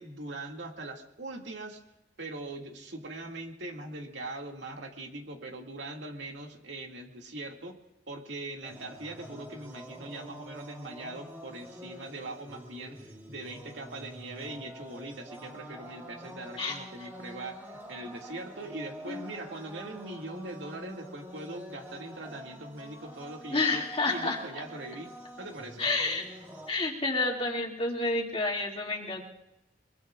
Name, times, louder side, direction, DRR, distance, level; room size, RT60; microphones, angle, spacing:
voice 1, 0.0-1.8 2.2-7.8 8.1-25.9, right 2 dB, 80° right, 1 dB, 2.3 m, -41 dB
sound 1, 8.6-26.7, right 1 dB, 15° right, 2.2 m, -47 dB
voice 2, 23.5-24.4 25.8-26.2 26.7-29.2, left 3 dB, 35° left, -2 dB, 2.5 m, -29 dB
23.0 x 23.0 x 2.5 m, 0.89 s
head